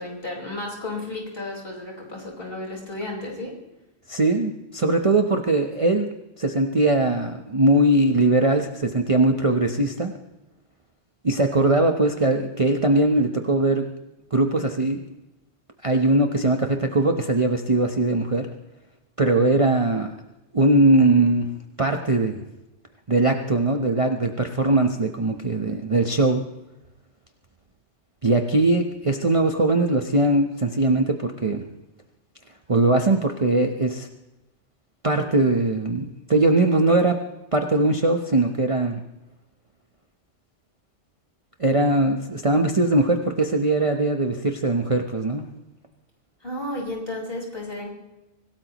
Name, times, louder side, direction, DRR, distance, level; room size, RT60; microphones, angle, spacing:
voice 1, 0.0-3.5 46.4-47.9, left 2 dB, 50° left, -2 dB, 5.2 m, -33 dB
voice 2, 4.1-6.1 6.4-10.1 11.2-13.9 14.3-15.0 15.8-18.5 19.2-20.1 20.5-21.5 21.8-22.4 23.1-26.4 28.2-31.6 32.7-34.1 35.0-37.2 37.5-39.0 41.6-45.4, right 2 dB, 30° right, 4 dB, 1.0 m, -20 dB
25.5 x 18.0 x 3.0 m, 0.98 s
omnidirectional pair, 1.3 m